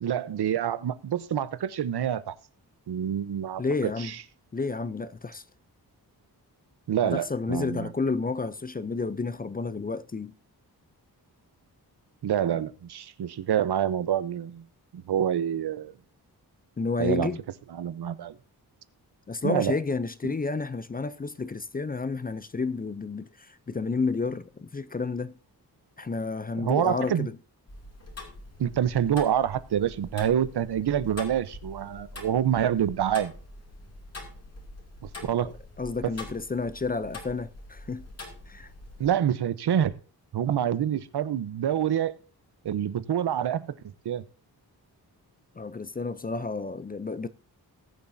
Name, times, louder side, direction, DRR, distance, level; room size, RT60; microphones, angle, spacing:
voice 1, 0.0-2.3 2.9-4.2 6.9-7.9 12.2-14.6 14.9-15.9 17.0-17.3 17.7-18.4 19.4-19.8 20.2-20.3 26.6-27.3 28.6-33.3 35.2-35.5 39.0-39.9 40.3-42.1 42.6-44.2, right 9 dB, 85° right, 0.9 m, -27 dB
voice 2, 3.6-4.1 4.5-5.4 7.1-10.3 16.8-17.4 19.3-25.3 26.0-27.3 35.4-35.5 35.8-38.1 38.5-38.7 45.6-47.3, left 4 dB, 25° left, 0.4 m, -31 dB
Tick-tock, 27.7-39.1, left 2 dB, 40° left, 2.6 m, -44 dB
19.5 x 7.1 x 2.7 m
wide cardioid pair, 140°, 39 cm